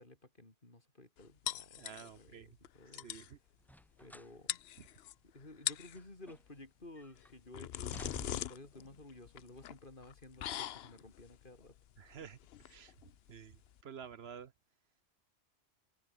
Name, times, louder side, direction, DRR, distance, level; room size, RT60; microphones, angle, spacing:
voice 1, 0.0-3.1 4.0-4.6 5.2-11.8, left 2 dB, 45° left, 4.2 m, -54 dB
sound 1, 1.5-2.3 2.6-2.7 2.9-3.3 4.1-4.2 4.5-5.1 5.5-6.0 7.2-13.8, left 11 dB, 65° left, 0.8 m, -42 dB
voice 2, 1.8-2.5 2.9-3.4 12.0-12.4 12.7-12.9 13.3-14.5, right 7 dB, 65° right, 1.1 m, -50 dB
sound 2, 3.6-4.4 4.8-4.9 5.6-6.7 7.0-7.3 7.7-8.7 9.5-9.7, equal, ahead, 1.5 m, -53 dB
omnidirectional pair, 1.2 m